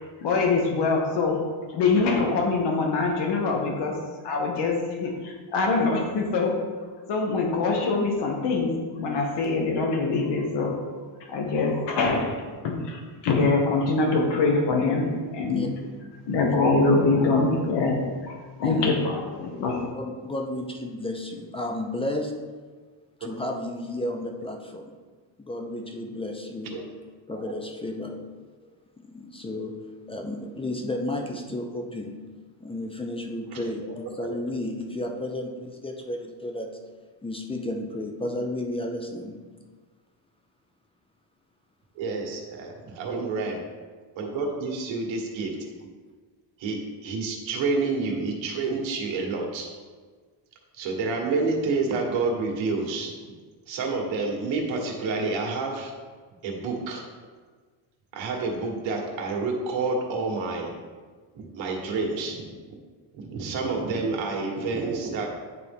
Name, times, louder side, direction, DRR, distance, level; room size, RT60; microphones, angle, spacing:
voice 1, 0.2-1.4 1.7-3.9 4.2-6.5 7.1-10.7 11.3-12.3 12.6-15.6 16.3-19.9, left 3 dB, 65° left, 1 dB, 1.3 m, -24 dB
voice 2, 19.9-22.4 23.2-24.9 25.4-26.8 27.3-28.3 29.1-32.1 32.6-36.8 37.2-39.4, left 1 dB, 15° left, 3 dB, 0.4 m, -32 dB
voice 3, 41.9-43.6 44.1-45.5 46.6-49.7 50.8-53.1 53.7-55.9 56.4-57.0 58.1-60.8 61.3-62.8 63.1-65.3, right 3 dB, 80° right, 0 dB, 1.6 m, -29 dB
9.5 x 4.0 x 3.7 m, 1.5 s
cardioid pair, 145°, 45 cm